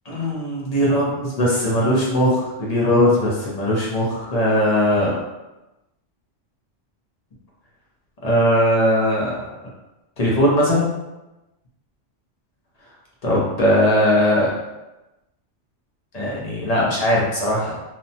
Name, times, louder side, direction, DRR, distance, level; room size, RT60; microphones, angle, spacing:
voice 1, 0.1-5.2 8.2-9.5 10.2-11.0 13.2-14.5 16.1-17.8, equal, 45° left, -5 dB, 0.6 m, -19 dB
2.9 x 2.1 x 2.7 m, 1.0 s
omnidirectional pair, 1.3 m